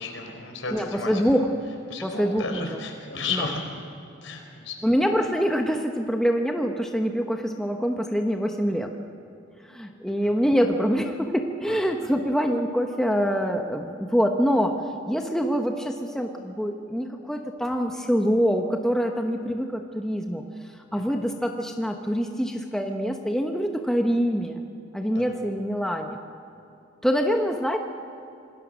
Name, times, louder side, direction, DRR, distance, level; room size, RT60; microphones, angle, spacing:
voice 1, 0.0-1.2 1.9-3.6 4.2-4.7 10.2-10.3 11.7-11.8 25.1-25.3, left 4 dB, 80° left, 3 dB, 4.3 m, -33 dB
voice 2, 0.7-1.5 2.0-2.8 3.3-3.5 4.8-8.9 9.7-14.8 15.1-20.4 20.9-24.7 24.9-26.2 27.0-27.8, equal, 5° left, 3 dB, 1.0 m, -25 dB
27.0 x 19.5 x 6.4 m, 2.6 s
head